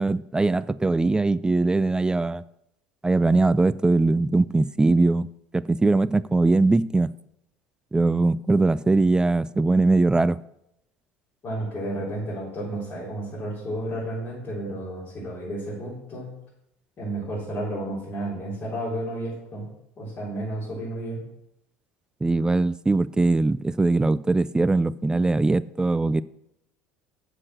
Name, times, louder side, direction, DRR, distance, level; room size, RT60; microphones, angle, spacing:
voice 1, 0.0-2.4 3.0-5.3 5.5-7.1 7.9-10.4 22.2-26.2, right 3 dB, 10° right, 0.4 m, -21 dB
voice 2, 11.4-16.4 17.0-19.7 20.0-21.2, right 1 dB, 40° left, 4.4 m, -32 dB
7.3 x 6.7 x 6.5 m
hypercardioid pair, 75°, 6 cm